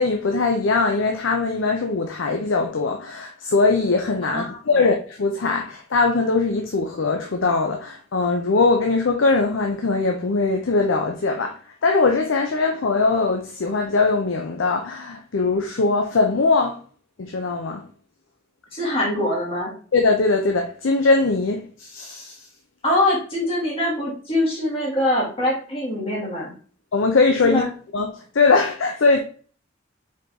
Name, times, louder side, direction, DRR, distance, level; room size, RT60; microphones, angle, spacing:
voice 1, 0.0-16.8 17.2-17.8 19.9-22.4 26.9-27.7 27.9-29.2, left 3 dB, 65° left, 0.6 m, -21 dB
voice 2, 4.2-4.9 18.7-19.7 22.8-26.5 27.4-27.7, left 1 dB, 30° left, 1.9 m, -23 dB
4.8 x 3.9 x 2.8 m
head